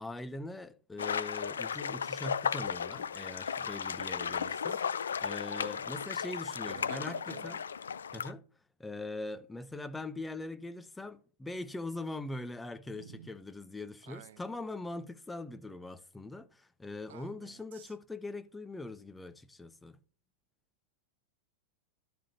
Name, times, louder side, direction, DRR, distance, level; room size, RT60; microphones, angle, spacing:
voice 1, 0.0-7.6 8.1-8.4 8.8-20.0, left 2 dB, 10° left, 0.6 m, -42 dB
sound 1, 1.0-8.3, left 7 dB, 70° left, 0.3 m, -35 dB
voice 2, 4.3-4.9 6.7-7.6 12.9-13.3 14.1-14.4 17.1-17.9, right 11 dB, 60° right, 0.5 m, -51 dB
11.0 x 4.8 x 4.1 m
figure-of-eight pair, 90°, 0 cm